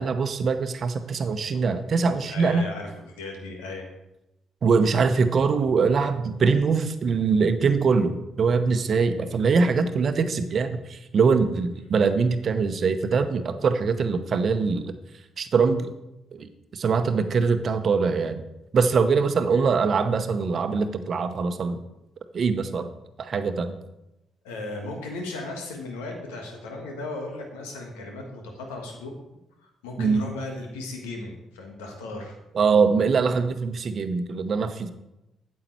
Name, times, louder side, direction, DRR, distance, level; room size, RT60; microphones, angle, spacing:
voice 1, 0.0-2.7 4.6-14.9 15.4-15.9 16.3-18.4 18.7-21.8 22.3-22.9 23.2-23.8 30.0-30.2 32.5-34.9, right 5 dB, 55° right, 9 dB, 0.9 m, -23 dB
voice 2, 2.3-3.9 19.5-19.6 24.4-29.1 29.6-32.4, left 2 dB, 85° left, 2 dB, 1.6 m, -36 dB
9.0 x 7.5 x 4.5 m, 0.92 s
hypercardioid pair, 45°, 0 cm